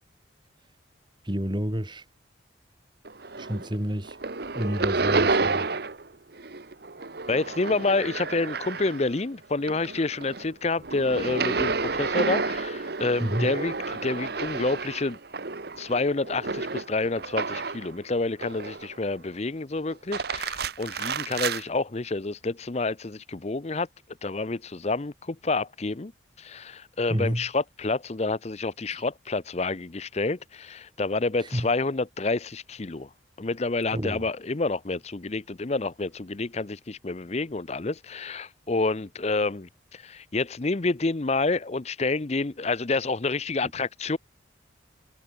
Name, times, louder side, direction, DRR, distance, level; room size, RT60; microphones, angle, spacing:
voice 1, 1.2-2.0 3.4-4.2 4.5-5.7 13.2-13.5 27.1-27.5 28.9-29.0 31.4-31.7 33.9-34.2, equal, 25° right, 2.5 m, -29 dB
sound 1, 3.0-3.8 4.0-6.1 6.3-9.2 9.6-17.9 18.4-19.1 19.9-21.6, right 4 dB, 55° right, 1.2 m, -30 dB
voice 2, 7.3-15.2 15.8-23.9 24.2-26.1 26.4-33.1 33.4-44.2, left 3 dB, 35° left, 0.7 m, -28 dB
head